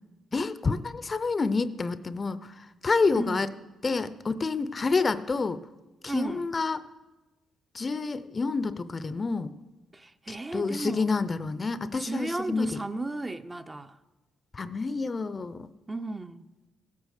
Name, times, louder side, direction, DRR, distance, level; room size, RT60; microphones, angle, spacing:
voice 1, 0.3-3.5 3.8-5.6 6.0-6.8 7.7-9.5 10.3-12.8 14.5-15.7, left 4 dB, 30° left, 0.6 m, -28 dB
voice 2, 3.1-3.5 6.1-6.5 9.9-11.1 12.0-14.0 15.9-16.5, right 2 dB, 20° right, 0.6 m, -34 dB
16.5 x 8.3 x 6.5 m
cardioid pair, 90°, 0 cm